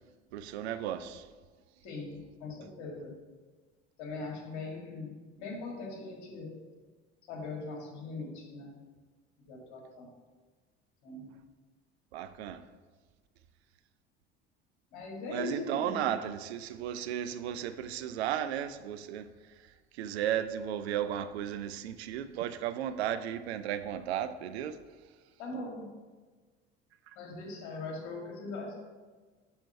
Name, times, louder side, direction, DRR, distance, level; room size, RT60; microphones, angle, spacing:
voice 1, 0.3-1.3 12.1-12.7 15.3-19.3 19.9-24.8, right 10 dB, 75° right, 0.5 m, -34 dB
voice 2, 1.8-3.1 4.0-6.6 7.3-8.7 9.5-10.1 11.0-11.3 14.9-16.2 25.4-25.9 27.2-28.7, left 3 dB, 60° left, 2.0 m, -40 dB
7.0 x 4.3 x 5.3 m
figure-of-eight pair, 60°, 33 cm